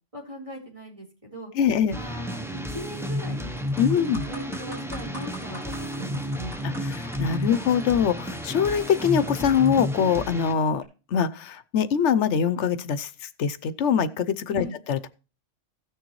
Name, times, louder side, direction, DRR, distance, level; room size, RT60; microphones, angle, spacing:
voice 1, 0.1-1.5 1.9-3.5 4.3-6.6 14.6-14.7, right 1 dB, 25° right, 3.9 m, -40 dB
voice 2, 1.6-2.0 3.8-4.3 7.0-10.8 11.1-15.1, left 7 dB, 70° left, 1.0 m, -23 dB
sound 1, 1.9-10.5, left 1 dB, 5° right, 0.6 m, -31 dB
sound 2, 3.1-3.2 3.6-10.0 10.7-10.8, left 1 dB, 75° right, 5.1 m, -45 dB
16.0 x 6.6 x 3.1 m
omnidirectional pair, 1.2 m